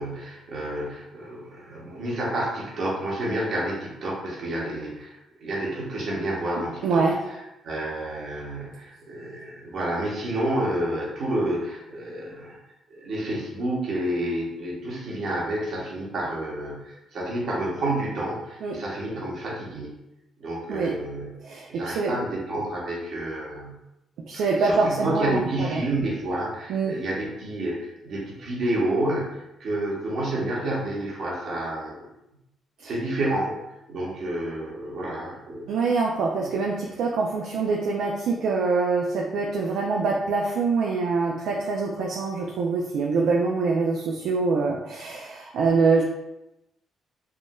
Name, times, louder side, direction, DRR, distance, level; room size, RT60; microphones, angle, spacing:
voice 1, 0.0-7.1 7.6-12.6 12.9-20.0 20.4-21.3 21.7-23.8 24.3-31.9 32.8-33.6 33.9-35.8 36.4-36.5, right 1 dB, 65° right, -4 dB, 1.0 m, -29 dB
voice 2, 6.8-7.2 18.6-18.8 20.7-21.0 21.4-22.1 24.3-25.8 26.7-27.0 32.8-32.9 35.7-46.0, right 4 dB, 80° right, -1 dB, 0.3 m, -24 dB
3.5 x 2.5 x 2.2 m, 0.91 s
cardioid pair, 90°, 0 cm